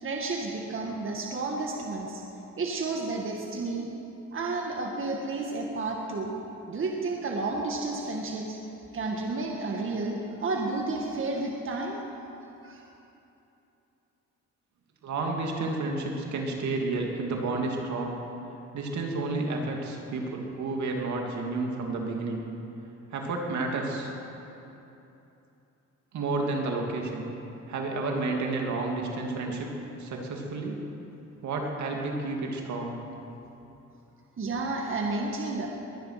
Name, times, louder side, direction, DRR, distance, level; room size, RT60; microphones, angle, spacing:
voice 1, 0.0-2.2 2.6-3.9 4.3-6.3 6.7-8.6 8.9-12.0 12.6-12.8 34.4-35.7, right 3 dB, 45° right, 0 dB, 1.8 m, -31 dB
voice 2, 15.0-18.2 18.7-22.4 23.1-24.1 26.1-27.3 27.7-29.7 30.0-30.8 31.4-33.0, right 3 dB, 70° right, 1 dB, 2.6 m, -31 dB
21.0 x 10.5 x 5.9 m, 2.9 s
cardioid pair, 90°, 30 cm